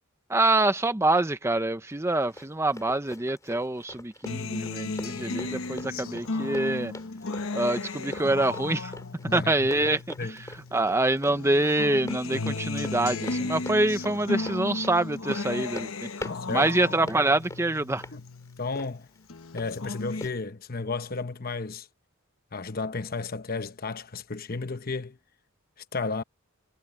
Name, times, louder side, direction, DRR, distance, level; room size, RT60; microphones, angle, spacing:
voice 1, 0.3-6.9 7.5-8.9 9.3-10.0 10.7-15.9 16.5-18.0, right 2 dB, 10° right, 0.7 m, -25 dB
Run, 1.9-19.7 20.2-20.3, left 1 dB, 15° left, 6.6 m, -44 dB
Acoustic guitar, 4.3-10.9 11.3-18.9 19.3-20.2, left 3 dB, 75° left, 1.2 m, -35 dB
voice 2, 9.2-9.9 10.2-10.4 16.3-16.7 18.1-18.2 18.6-19.1 19.5-21.9 22.5-25.2 25.9-26.2, left 4 dB, 45° left, 1.0 m, -33 dB
head